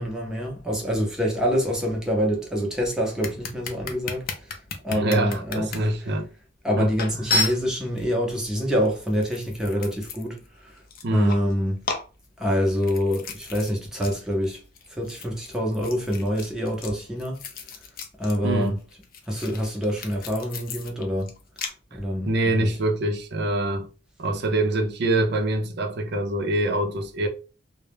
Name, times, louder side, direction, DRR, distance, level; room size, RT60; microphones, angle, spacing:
voice 1, 0.0-4.6 4.8-6.1 6.6-10.8 11.1-11.8 12.4-14.6 14.9-17.4 18.2-18.8 19.3-21.3 21.9-22.8, equal, 5° right, 0.6 m, -26 dB
sound 1, 3.2-5.8 6.4-6.5 7.0-8.0 8.8-10.5 10.8-11.5 11.8-13.7 14.0-14.2 14.4-18.4 18.6-21.7, left 3 dB, 50° left, 0.4 m, -32 dB
voice 2, 4.9-6.3 6.8-6.9 11.0-11.4 18.4-18.8 22.2-23.9 24.2-27.3, right 1 dB, 55° right, 0.5 m, -24 dB
2.2 x 2.0 x 3.2 m
head